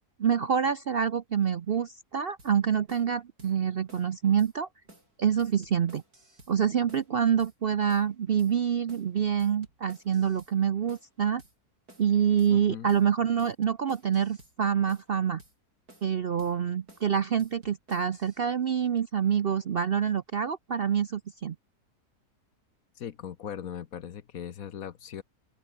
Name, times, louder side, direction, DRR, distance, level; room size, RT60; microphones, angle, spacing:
voice 1, 0.2-4.7 5.2-6.0 6.5-11.4 12.0-15.4 16.0-21.6, right 8 dB, 55° right, 0.7 m, -26 dB
sound 1, 2.4-2.6 2.9-3.1 3.4-3.6 3.9-4.1 4.4-4.5 4.9-5.1 5.4-6.6 6.9-7.1 7.4-7.6 7.9-8.1 8.4-8.6 8.9-9.1 9.4-10.6 10.9-11.1 11.4-11.6 11.9-12.1 12.4-12.6 12.9-13.1 13.4-14.6 14.9-15.1 15.4-15.6 15.9-16.1 16.4-16.6 16.9-17.1 17.4-18.4, right 2 dB, 70° right, 8.4 m, -55 dB
voice 2, 12.5-12.9 23.0-25.2, left 9 dB, 65° left, 1.4 m, -39 dB
open air
omnidirectional pair, 1.7 m